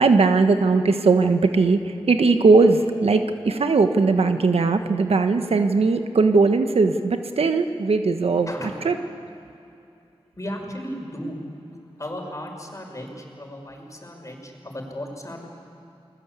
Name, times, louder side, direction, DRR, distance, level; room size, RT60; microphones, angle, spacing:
voice 1, 0.0-8.5 8.8-9.0, right 4 dB, 85° right, 7 dB, 1.3 m, -19 dB
voice 2, 10.4-11.4 11.7-15.5, equal, 30° left, 2 dB, 5.9 m, -35 dB
30.0 x 21.0 x 8.4 m, 2.7 s
cardioid pair, 50°, 10 cm